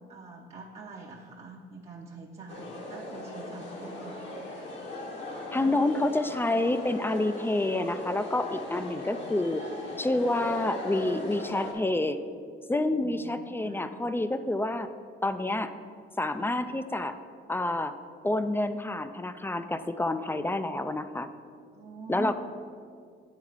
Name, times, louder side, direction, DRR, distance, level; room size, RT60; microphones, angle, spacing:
voice 1, 0.1-4.2 6.0-6.6 11.2-11.3 12.9-13.9 16.3-16.5 21.7-22.3, right 3 dB, 35° right, -1 dB, 0.7 m, -45 dB
sound 1, 2.5-11.7, left 1 dB, 70° left, 1.4 m, -39 dB
voice 2, 5.5-9.6 10.0-12.2 12.7-14.9 15.2-15.7 16.2-17.2 17.5-17.9 18.2-21.3 22.1-22.3, left 2 dB, 10° left, 10 dB, 0.3 m, -28 dB
9.2 x 3.5 x 4.9 m, 2.2 s
cardioid pair, 90°, 20 cm